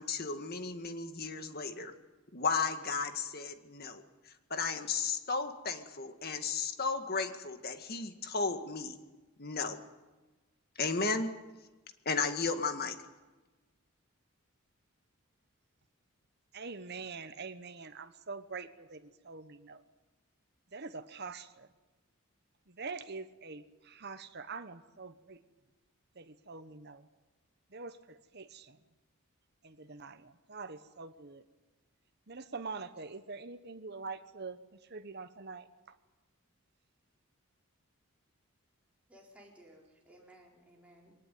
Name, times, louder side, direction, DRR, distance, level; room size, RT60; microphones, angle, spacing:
voice 1, 0.0-1.9 2.3-4.0 4.5-9.0 9.4-9.8 10.8-11.3 12.1-13.0, left 4 dB, 45° left, 8 dB, 1.9 m, -34 dB
voice 2, 16.5-19.8 20.7-21.7 22.7-25.4 26.2-27.1 27.7-28.8 29.6-31.4 32.3-34.6 34.9-35.9, right 4 dB, 50° right, 9 dB, 1.2 m, -44 dB
voice 3, 39.1-41.1, right 1 dB, 5° right, -2 dB, 4.7 m, -58 dB
22.5 x 19.0 x 9.4 m, 1.2 s
head